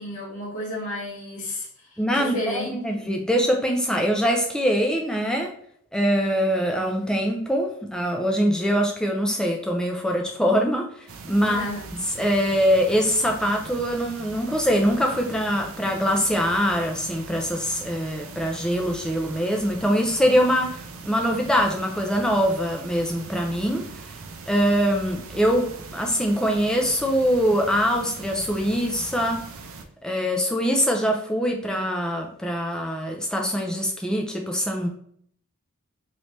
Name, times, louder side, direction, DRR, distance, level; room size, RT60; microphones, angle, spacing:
voice 1, 0.0-3.1 11.4-11.9, left 1 dB, 70° left, -10 dB, 1.3 m, -32 dB
voice 2, 2.0-5.5 5.9-11.6 12.1-23.8 24.5-25.7 25.9-29.4 30.0-34.9, equal, 5° left, 1 dB, 0.4 m, -23 dB
sound 1, 11.1-29.9, right 4 dB, 70° right, 0.5 m, -41 dB
3.2 x 3.1 x 2.7 m, 0.63 s
head